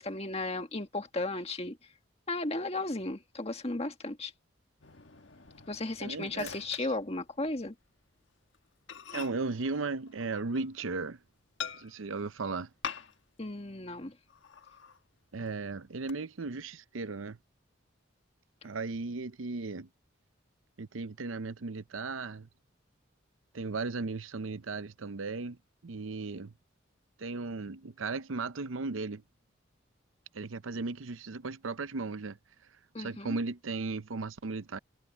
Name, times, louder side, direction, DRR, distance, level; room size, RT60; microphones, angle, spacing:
voice 1, 0.0-1.8 2.3-4.3 5.7-7.7 13.4-14.1 32.9-33.4, left 2 dB, 30° left, 1.7 m, -35 dB
Microwave oven, 4.8-7.7 8.0-8.2 8.5-8.6 8.9-11.0 11.6-12.2 12.8-13.4 13.7-13.8 14.3-15.0 15.5-16.1, left 7 dB, 65° left, 1.4 m, -45 dB
voice 2, 6.0-6.5 9.1-11.2 11.7-12.7 15.3-17.4 18.6-19.9 20.8-22.5 23.5-25.6 25.8-26.5 27.2-29.2 30.3-32.4 33.0-34.8, right 3 dB, 85° right, 0.7 m, -36 dB
head